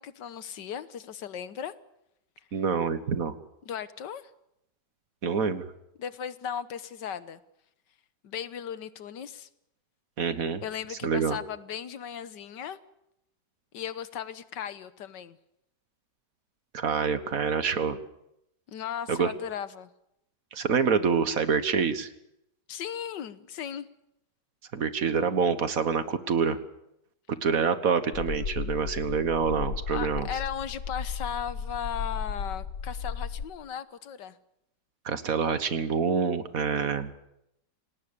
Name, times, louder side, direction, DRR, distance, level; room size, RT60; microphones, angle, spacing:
voice 1, 0.0-1.7 3.6-4.3 6.0-7.4 8.2-9.5 10.6-12.8 13.7-15.4 18.7-19.9 22.7-23.9 29.9-34.4, left 8 dB, 85° left, 14 dB, 1.7 m, -36 dB
voice 2, 2.5-3.3 5.2-5.7 10.2-10.6 11.0-11.4 16.7-18.0 19.1-19.3 20.5-22.1 24.7-26.6 27.4-30.3 35.0-37.1, right 6 dB, 55° right, 12 dB, 1.7 m, -26 dB
sound 1, 28.1-33.5, left 6 dB, 65° left, 1.6 m, -35 dB
28.5 x 18.0 x 7.0 m, 0.82 s
omnidirectional pair, 1.8 m